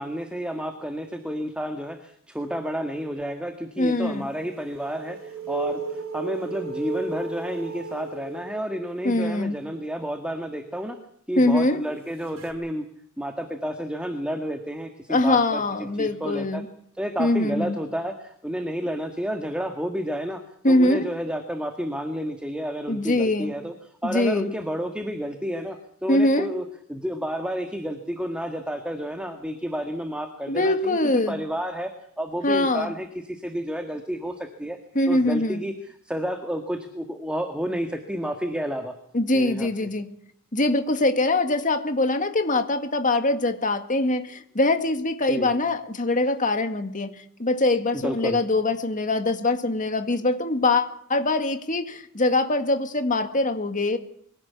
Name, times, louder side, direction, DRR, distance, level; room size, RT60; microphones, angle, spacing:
voice 1, 0.0-11.0 11.3-12.8 13.2-16.6 16.9-23.7 24.0-26.6 26.9-34.8 35.1-38.9 39.3-39.9 45.3-45.5 47.9-48.4, equal, 5° right, 5 dB, 1.7 m, -31 dB
voice 2, 3.8-4.3 9.0-9.6 11.4-11.8 15.1-16.7 17.2-17.8 20.6-21.1 22.9-23.6 24.0-24.5 26.1-26.5 30.5-31.4 32.4-32.9 35.0-35.6 39.1-40.1 40.5-47.1 47.4-54.0, left 2 dB, 35° left, 8 dB, 2.0 m, -23 dB
sound 1, 4.4-9.1 12.4-12.5, right 4 dB, 70° right, 5.4 m, -34 dB
23.0 x 17.0 x 8.5 m, 0.69 s
head